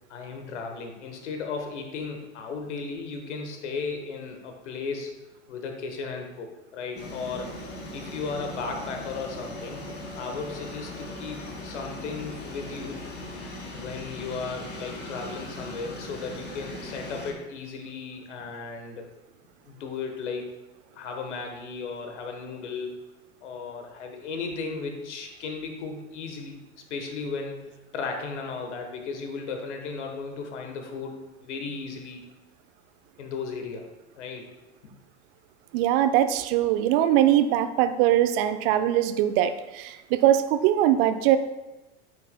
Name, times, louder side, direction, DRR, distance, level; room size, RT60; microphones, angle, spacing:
voice 1, 0.1-5.2 5.5-7.5 7.9-9.9 10.2-13.0 13.7-19.1 19.6-20.5 20.9-23.0 23.4-26.6 26.9-27.7 27.9-31.2 31.4-32.2 33.2-33.8 34.2-34.4, left 4 dB, 80° left, 4 dB, 1.3 m, -35 dB
sound 1, 7.0-17.3, left 1 dB, 30° left, 2.3 m, -39 dB
voice 2, 35.7-41.4, right 12 dB, 55° right, 11 dB, 0.6 m, -22 dB
8.9 x 6.6 x 2.2 m, 1.1 s
hypercardioid pair, 95°, 35 cm